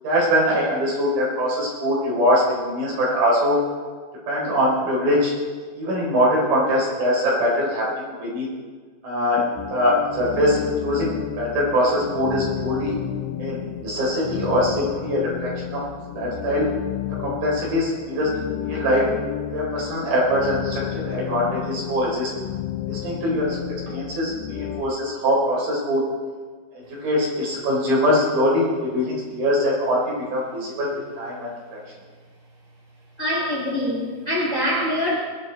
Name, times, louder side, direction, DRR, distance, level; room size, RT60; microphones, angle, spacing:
voice 1, 0.0-3.6 4.3-5.3 5.7-8.5 9.0-9.4 9.7-13.0 13.4-15.8 16.1-16.7 17.2-18.3 18.6-19.0 19.5-22.3 22.9-26.0 26.7-30.9 31.2-31.8, equal, 60° right, -4 dB, 5.7 m, -22 dB
sound 1, 9.6-24.8, left 12 dB, 75° left, 2.4 m, -32 dB
voice 2, 33.2-35.1, equal, 25° left, -3 dB, 2.1 m, -24 dB
22.0 x 10.0 x 4.6 m, 1.5 s
omnidirectional pair, 4.8 m